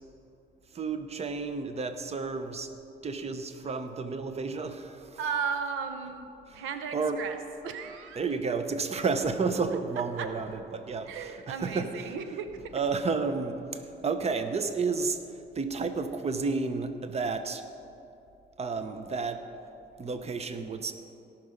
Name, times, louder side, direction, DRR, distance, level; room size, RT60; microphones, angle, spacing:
voice 1, 0.7-2.7 3.0-5.2 6.5-6.6 6.9-7.2 8.2-12.2 12.7-15.2 15.5-17.6 18.6-19.4 20.0-20.9, right 4 dB, 30° right, 9 dB, 0.8 m, -31 dB
voice 2, 5.2-7.4 7.6-8.2 10.2-10.3 11.1-12.5, right 6 dB, 90° right, 7 dB, 0.8 m, -35 dB
18.0 x 6.0 x 5.1 m, 2.7 s
cardioid pair, 90°, 20 cm